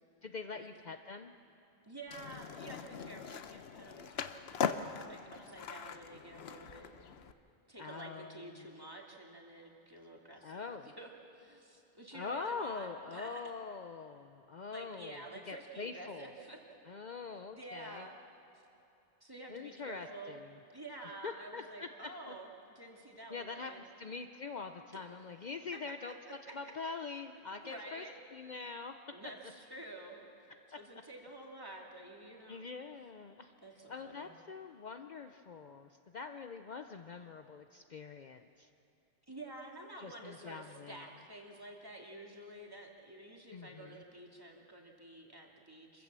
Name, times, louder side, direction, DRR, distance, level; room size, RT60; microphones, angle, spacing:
voice 1, 0.2-1.3 7.8-8.7 10.4-10.9 12.1-15.2 15.5-16.3 16.9-18.1 19.5-20.5 21.2-21.9 22.3-22.4 23.3-28.0 28.3-28.9 32.5-33.5 33.9-38.7 40.0-41.0 43.5-44.0, left 4 dB, 50° left, 7 dB, 0.7 m, -44 dB
voice 2, 1.8-4.6 5.1-6.9 7.7-13.4 14.7-16.6 17.5-18.2 19.2-20.4 20.7-22.5 22.8-23.9 24.9-25.0 26.3-26.4 27.6-28.2 29.1-30.3 30.8-32.7 33.6-34.3 39.3-46.0, right 1 dB, 20° right, -1 dB, 2.3 m, -49 dB
Skateboard, 2.1-7.3, left 7 dB, 85° left, 1.0 m, -40 dB
26.5 x 15.0 x 7.4 m, 2.7 s
omnidirectional pair, 1.0 m